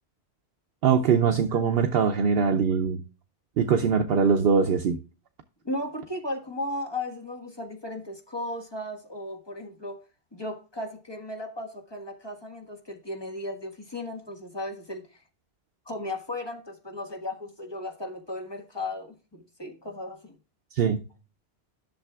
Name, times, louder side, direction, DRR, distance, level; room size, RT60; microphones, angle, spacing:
voice 1, 0.8-3.0 3.6-5.0 20.7-21.0, right 6 dB, 65° right, 0.8 m, -22 dB
voice 2, 5.6-10.0 10.3-15.0 15.8-20.4, left 1 dB, 25° left, 1.5 m, -35 dB
11.5 x 6.6 x 2.3 m
omnidirectional pair, 1.1 m